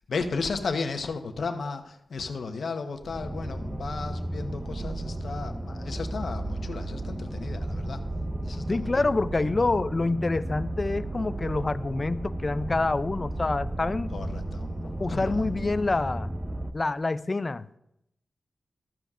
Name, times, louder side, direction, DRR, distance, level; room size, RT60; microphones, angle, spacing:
voice 1, 0.1-8.0 8.4-9.1 14.1-15.5, left 4 dB, 70° left, 6 dB, 1.0 m, -34 dB
sound 1, 3.0-16.7, right 1 dB, 15° right, 0.6 m, -34 dB
voice 2, 8.7-14.1 15.0-16.3 16.7-17.8, left 3 dB, 30° left, 15 dB, 0.4 m, -27 dB
13.5 x 13.0 x 2.5 m, 0.83 s
wide cardioid pair, 110°, 0 cm